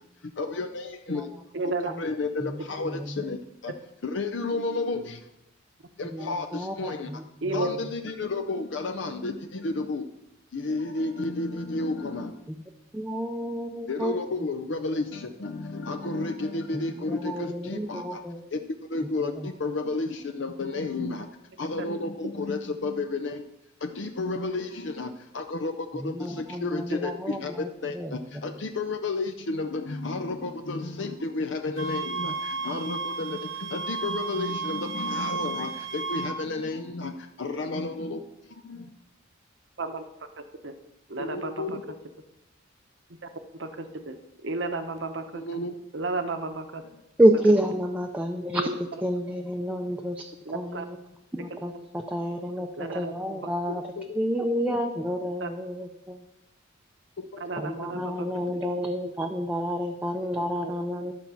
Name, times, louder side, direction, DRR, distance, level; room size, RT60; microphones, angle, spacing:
voice 1, 0.2-1.3 1.6-3.7 4.0-5.2 6.0-7.1 7.5-10.0 10.5-12.5 13.9-18.2 18.5-18.6 18.9-21.3 21.6-23.4 23.8-38.2 38.5-38.9 41.2-42.0 45.3-45.7 54.0-54.2 57.2-57.4 57.9-58.0, left 3 dB, 65° left, 7 dB, 0.6 m, -32 dB
voice 2, 1.5-1.9 7.4-7.7 21.8-21.9 26.9-27.0 39.8-40.0 40.6-40.7 41.1-41.7 43.6-44.2 44.4-45.4 45.9-46.8 48.6-48.7 50.5-50.8 52.8-53.4 55.4-55.5 57.4-58.3 60.6-60.7, right 3 dB, 65° right, 8 dB, 0.9 m, -32 dB
voice 3, 2.4-3.2 6.1-7.7 12.5-12.6 12.9-14.2 16.7-18.5 19.3-19.5 25.9-28.6 47.2-51.0 51.3-56.3 57.5-61.1, equal, 10° right, 2 dB, 0.5 m, -29 dB
sound 1, 31.8-36.3, right 4 dB, 90° right, 1.8 m, -33 dB
11.5 x 4.5 x 7.0 m, 0.88 s
head